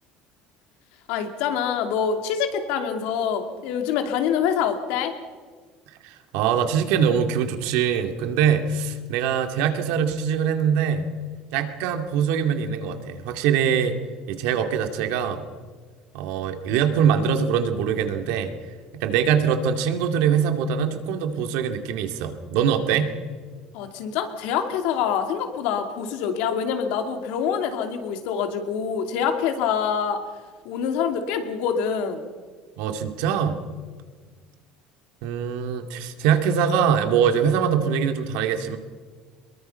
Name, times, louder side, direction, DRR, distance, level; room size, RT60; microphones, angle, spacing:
voice 1, 1.1-5.1 23.7-30.2 30.6-32.3, left 7 dB, 80° left, 6 dB, 2.8 m, -25 dB
voice 2, 6.0-11.1 11.5-14.0 14.3-15.4 16.1-18.5 18.9-23.1 32.8-33.6 35.2-38.8, right 7 dB, 80° right, 6 dB, 2.2 m, -23 dB
23.5 x 22.0 x 5.6 m, 1.5 s
cardioid pair, 165°, 2 cm